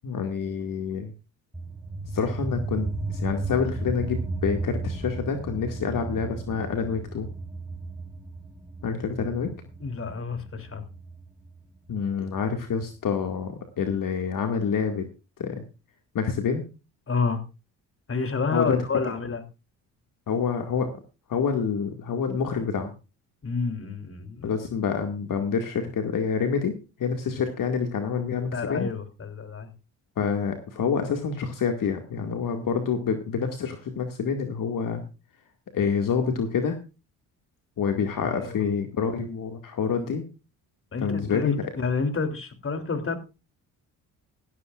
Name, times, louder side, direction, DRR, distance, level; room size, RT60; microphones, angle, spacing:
voice 1, 0.0-1.1 2.1-7.3 8.8-9.5 11.9-15.1 15.4-15.6 16.1-16.7 18.5-18.8 20.3-20.9 21.3-22.9 24.4-28.9 30.2-35.0 35.7-36.8 37.8-40.3 41.0-41.6, left 6 dB, 55° left, 5 dB, 2.2 m, -27 dB
sound 1, 1.5-12.6, right 3 dB, 5° right, 5.0 m, -34 dB
voice 2, 9.8-10.8 17.1-17.4 18.1-19.4 23.4-24.5 28.5-29.7 38.3-38.6 40.9-43.2, left 4 dB, 35° left, 8 dB, 3.2 m, -29 dB
15.5 x 14.0 x 2.5 m, 0.30 s
supercardioid pair, 70°, 38 cm